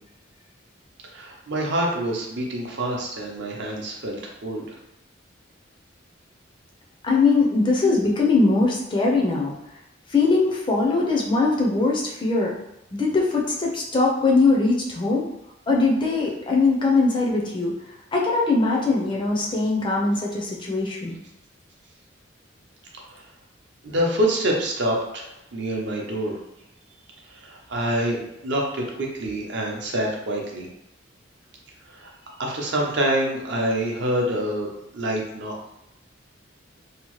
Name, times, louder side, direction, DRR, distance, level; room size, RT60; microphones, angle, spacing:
voice 1, 1.1-4.7 23.1-23.2 23.8-26.4 27.3-30.7 31.9-32.1 32.4-35.6, right 1 dB, 60° right, -1 dB, 0.6 m, -26 dB
voice 2, 7.0-9.5 10.1-12.5 12.9-15.3 15.7-17.7 18.1-21.2, left 3 dB, 25° left, -2 dB, 0.4 m, -21 dB
2.8 x 2.0 x 3.0 m, 0.84 s
head